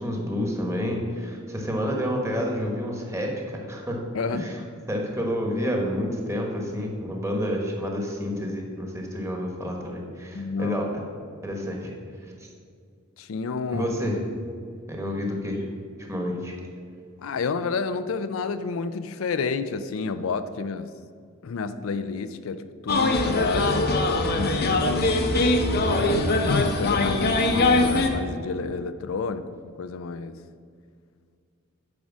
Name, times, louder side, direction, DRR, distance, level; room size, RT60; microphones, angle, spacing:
voice 1, 0.0-4.6 4.9-10.9 11.4-11.9 12.2-12.3 13.7-14.2 14.9-15.6 16.1-16.5 25.9-26.1, equal, 15° right, 0 dB, 1.3 m, -29 dB
voice 2, 4.1-4.5 10.3-10.8 13.2-13.9 17.2-20.9 21.4-25.2 26.5-29.5 29.8-30.4, left 4 dB, 75° left, 11 dB, 0.4 m, -30 dB
sound 1, 22.9-28.1, left 2 dB, 50° left, 0.8 m, -22 dB
9.4 x 4.8 x 6.0 m, 2.2 s
head